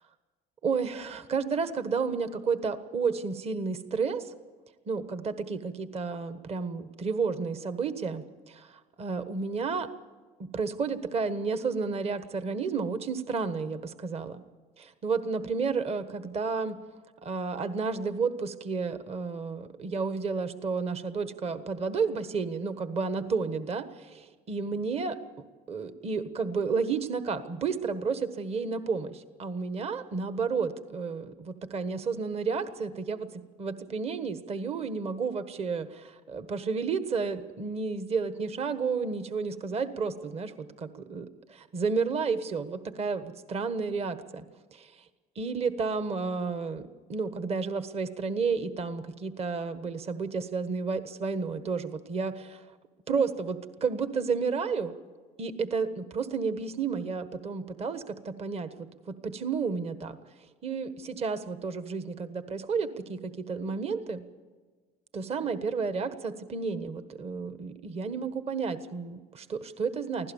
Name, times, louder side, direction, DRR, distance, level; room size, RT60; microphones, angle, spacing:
voice 1, 0.6-4.3 4.9-9.9 10.4-14.4 14.8-16.8 17.2-24.1 24.5-25.2 25.7-44.4 44.7-45.1 45.3-46.8 47.1-52.7 53.1-54.9 55.4-60.2 60.6-64.2 65.1-70.3, right 5 dB, 35° right, 10 dB, 1.4 m, -31 dB
24.0 x 16.0 x 7.2 m, 1.4 s
supercardioid pair, 105°, 17 cm